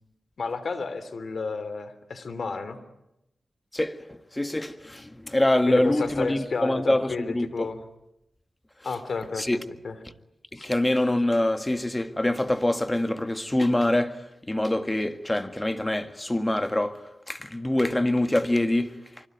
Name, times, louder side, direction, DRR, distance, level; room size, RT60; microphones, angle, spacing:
voice 1, 0.4-2.8 5.7-7.8 8.8-9.5 9.8-10.0 10.6-10.7, left 4 dB, 70° left, 3.1 m, -31 dB
voice 2, 3.7-7.7 9.4-9.6 10.5-18.9, left 1 dB, 20° left, 1.8 m, -25 dB
25.0 x 25.0 x 9.4 m
cardioid pair, 60°, 0 cm